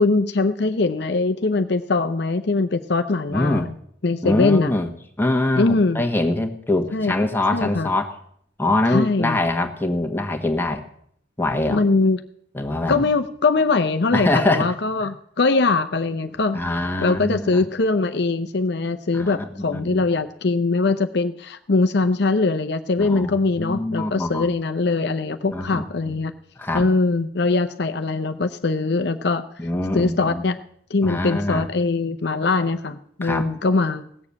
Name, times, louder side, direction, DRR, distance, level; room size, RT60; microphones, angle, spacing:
voice 1, 0.0-3.7 4.0-4.7 5.6-6.0 6.9-7.1 7.5-7.9 8.9-9.4 11.7-12.2 12.9-16.6 17.0-26.3 26.7-29.4 29.9-30.6 30.9-34.0, left 3 dB, 55° left, 9 dB, 0.6 m, -21 dB
voice 2, 3.3-3.6 4.2-4.9 5.2-8.1 8.6-10.8 11.4-11.8 12.5-13.1 14.1-14.7 16.5-17.6 19.1-20.0 23.0-24.5 25.5-25.8 26.6-26.8 29.6-30.4 31.0-31.7 33.2-33.5, left 2 dB, 10° left, 3 dB, 1.3 m, -23 dB
17.5 x 7.1 x 8.4 m, 0.67 s
head